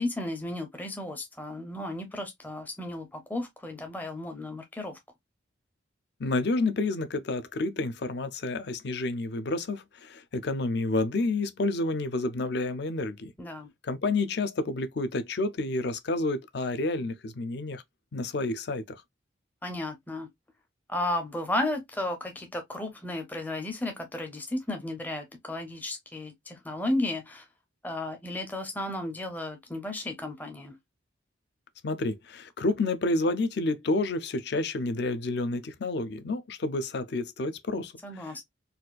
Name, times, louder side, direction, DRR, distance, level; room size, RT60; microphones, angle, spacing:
voice 1, 0.0-5.0 13.4-13.7 19.6-20.3 20.9-27.5 27.8-30.7 38.0-38.4, left 1 dB, 10° left, 0.5 m, -33 dB
voice 2, 6.2-13.3 13.8-17.8 18.1-19.0 31.8-38.4, left 2 dB, 60° left, 0.5 m, -29 dB
4.1 x 2.4 x 2.2 m
head